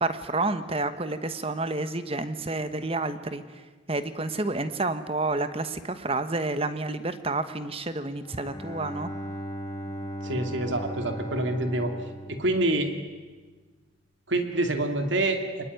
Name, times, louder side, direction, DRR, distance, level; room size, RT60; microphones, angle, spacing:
voice 1, 0.0-3.4 3.9-9.1, right 2 dB, 30° right, 11 dB, 1.3 m, -29 dB
Bowed string instrument, 8.2-13.2, equal, 15° left, 2.5 m, -38 dB
voice 2, 10.2-11.9 12.3-12.9 14.3-15.6, right 2 dB, 65° right, 6 dB, 2.7 m, -26 dB
25.0 x 20.5 x 9.5 m, 1.3 s
head